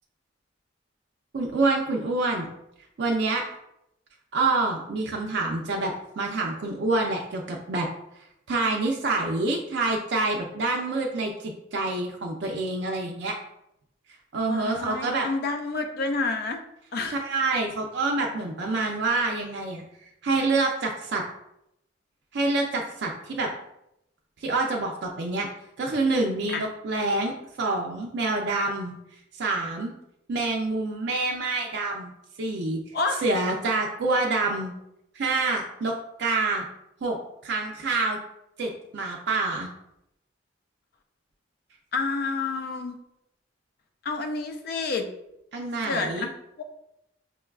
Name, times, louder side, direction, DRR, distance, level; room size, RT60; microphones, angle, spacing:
voice 1, 1.3-2.5 3.0-3.4 4.3-7.9 8.5-13.4 14.3-15.3 17.1-19.8 20.2-21.2 22.3-23.5 24.4-25.5 25.8-29.0 29.3-29.9 30.3-32.1 32.4-32.8 33.2-34.7 35.1-35.9 36.2-36.6 37.0-37.2 37.4-38.2 38.6-39.7 45.5-46.3, right 3 dB, 60° right, -1 dB, 0.4 m, -27 dB
voice 2, 14.5-16.6 16.9-17.2 26.5-26.6 32.9-33.2 41.9-43.0 44.0-45.1 45.8-46.3 46.6-46.7, left 3 dB, 55° left, 5 dB, 0.4 m, -29 dB
5.3 x 2.2 x 2.3 m, 0.81 s
head